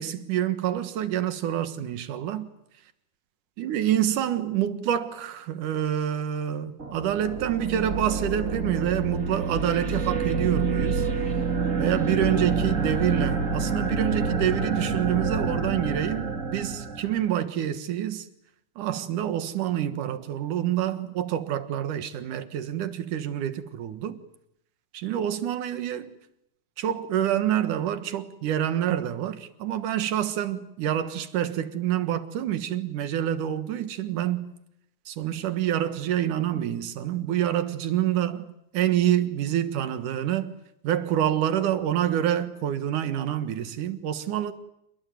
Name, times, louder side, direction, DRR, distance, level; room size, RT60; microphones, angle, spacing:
voice 1, 0.0-2.5 3.6-11.0 11.8-18.3 18.8-24.2 24.9-26.1 26.8-34.5 35.1-38.5 38.7-40.5 40.8-44.5, right 11 dB, 80° right, 3.0 m, -27 dB
sound 1, 6.8-17.3, right 4 dB, 25° right, 2.7 m, -28 dB
28.5 x 20.5 x 9.2 m
omnidirectional pair, 3.6 m